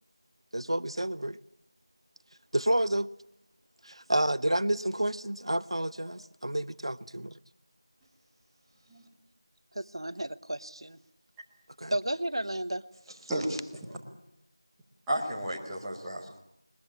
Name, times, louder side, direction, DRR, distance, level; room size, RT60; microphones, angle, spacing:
voice 1, 0.5-1.4 2.5-3.1 3.8-7.3 11.8-11.9, right 1 dB, 90° right, 0.8 m, -29 dB
voice 2, 9.7-11.0 11.9-12.8, right 1 dB, 70° right, 1.1 m, -33 dB
voice 3, 13.3-14.0 15.1-16.4, right 1 dB, ahead, 0.9 m, -33 dB
21.5 x 21.0 x 8.5 m
figure-of-eight pair, 180°, 3 cm